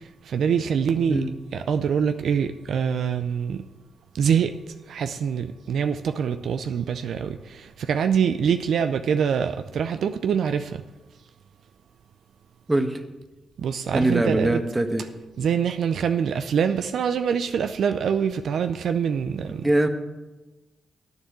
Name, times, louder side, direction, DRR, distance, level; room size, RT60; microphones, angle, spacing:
voice 1, 0.3-1.2 1.5-3.6 4.1-4.5 4.9-10.8 13.6-14.6 15.4-19.7, right 7 dB, 70° right, 8 dB, 0.5 m, -24 dB
voice 2, 12.7-13.0 13.9-15.1 19.6-19.9, right 1 dB, 20° right, 6 dB, 1.4 m, -22 dB
9.4 x 6.9 x 7.8 m, 1.1 s
supercardioid pair, 50°, 0 cm